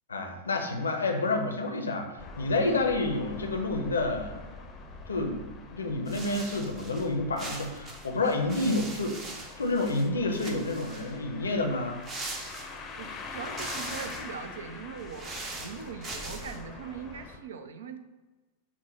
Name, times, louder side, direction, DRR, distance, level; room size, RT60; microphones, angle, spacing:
voice 1, 0.1-4.4 5.1-12.0, left 2 dB, 75° left, 4 dB, 0.6 m, -29 dB
sound 1, 2.2-17.4, left 3 dB, 30° left, 0.6 m, -44 dB
sound 2, 6.1-7.1 7.4-10.1 10.3-11.2 12.0-13.0 13.4-14.3 15.0-16.6, right 2 dB, 30° right, 0.7 m, -41 dB
voice 2, 13.0-18.0, right 6 dB, 65° right, 8 dB, 0.4 m, -41 dB
5.8 x 2.1 x 3.9 m, 1.2 s
figure-of-eight pair, 90°, 0 cm